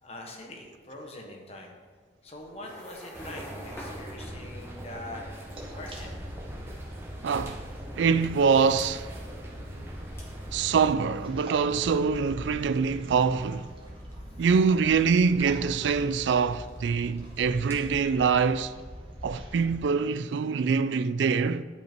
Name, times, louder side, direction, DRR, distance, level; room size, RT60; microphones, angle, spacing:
voice 1, 0.0-1.8 2.2-6.2, left 1 dB, 35° left, 1.3 m, -43 dB
sound 1, 2.3-18.5, equal, 15° left, 1.7 m, -52 dB
sound 2, 3.1-10.9, right 1 dB, 15° right, 1.0 m, -42 dB
sound 3, 5.5-19.8, equal, 30° right, 1.4 m, -43 dB
voice 2, 7.2-7.6 7.9-9.1 10.5-13.7 14.4-18.7 19.2-21.6, right 5 dB, 75° right, 0.3 m, -24 dB
10.5 x 5.6 x 4.5 m
head